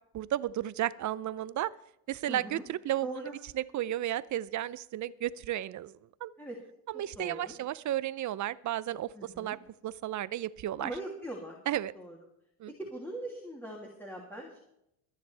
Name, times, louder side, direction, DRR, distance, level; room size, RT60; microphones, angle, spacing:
voice 1, 0.1-1.7 2.1-3.2 3.5-6.3 6.9-9.6 9.8-10.9 11.7-11.9 12.6-12.7, right 13 dB, 40° right, 18 dB, 0.6 m, -33 dB
voice 2, 2.3-2.6 3.0-3.3 6.4-6.6 7.2-7.6 9.1-9.5 10.8-11.6 11.9-12.2 12.8-14.6, right 1 dB, 5° left, -2 dB, 2.8 m, -41 dB
24.0 x 10.0 x 3.4 m, 0.80 s
supercardioid pair, 105°, 46 cm